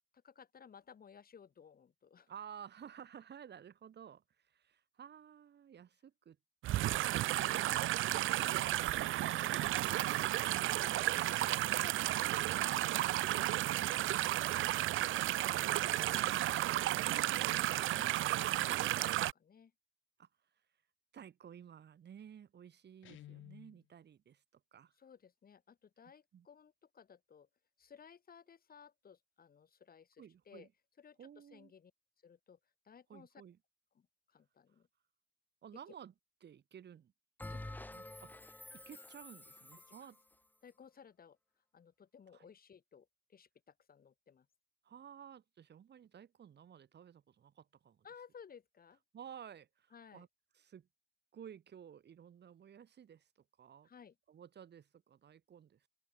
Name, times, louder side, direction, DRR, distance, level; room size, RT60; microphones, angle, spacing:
voice 1, 0.1-2.3 12.7-14.1 17.0-17.4 17.6-19.7 25.0-27.5 27.8-30.7 31.0-31.9 32.2-32.6 32.8-33.3 33.9-34.9 37.5-37.8 39.9-40.1 40.6-41.4 41.7-44.5 48.0-49.0 49.9-50.2 53.8-54.1, left 7 dB, 50° left, 4.8 m, -59 dB
voice 2, 2.3-6.4 20.2-20.3 21.1-24.9 26.3-26.5 30.2-30.7 31.2-31.7 33.1-33.6 35.6-36.1 36.4-37.1 37.9-38.4 38.7-40.2 42.3-42.5 44.8-48.1 49.1-50.3 50.5-50.9 51.3-53.3 53.6-53.9 54.3-55.9, right 8 dB, 60° right, 7.9 m, -55 dB
sound 1, 6.6-19.3, right 15 dB, 80° right, 1.1 m, -33 dB
Guitar, 23.0-23.8, left 13 dB, 80° left, 3.1 m, -54 dB
Bell, 37.4-40.2, left 2 dB, 10° left, 1.0 m, -49 dB
open air
cardioid pair, 90°, 20 cm